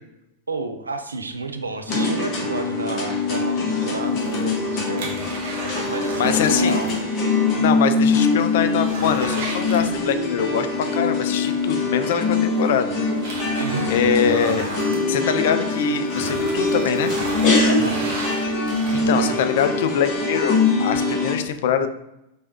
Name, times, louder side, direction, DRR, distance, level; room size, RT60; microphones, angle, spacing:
voice 1, 0.5-5.1 5.9-6.9 13.6-13.9 17.6-18.0, right 3 dB, 80° right, 7 dB, 0.4 m, -30 dB
sound 1, 1.9-21.3, left 3 dB, 35° left, 1.4 m, -23 dB
sound 2, 4.1-7.0 7.3-7.4 7.9-8.0 8.3-10.4 11.8-11.9 12.5-15.7 16.0-19.3 19.9-20.0, right 2 dB, 55° right, 1.0 m, -34 dB
voice 2, 6.2-6.8 7.6-10.7 10.9-13.0 13.9-14.7 15.1-17.1 18.9-21.9, left 8 dB, 55° left, 9 dB, 0.4 m, -23 dB
4.7 x 3.4 x 2.8 m, 0.87 s
figure-of-eight pair, 90°, 0 cm